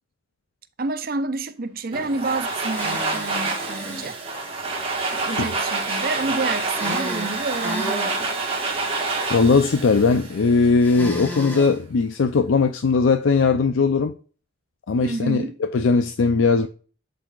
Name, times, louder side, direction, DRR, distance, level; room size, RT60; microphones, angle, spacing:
voice 1, 0.8-4.2 5.1-8.3 15.0-15.6, right 3 dB, 50° right, 0.6 m, -29 dB
Domestic sounds home sounds, 1.9-10.8, right 3 dB, 30° right, 1.5 m, -27 dB
sound 1, 2.7-4.1 6.7-8.2 10.8-11.7, equal, 10° left, 1.4 m, -33 dB
voice 2, 9.3-14.1 14.9-16.7, left 4 dB, 85° left, 0.5 m, -19 dB
11.5 x 4.1 x 2.4 m
head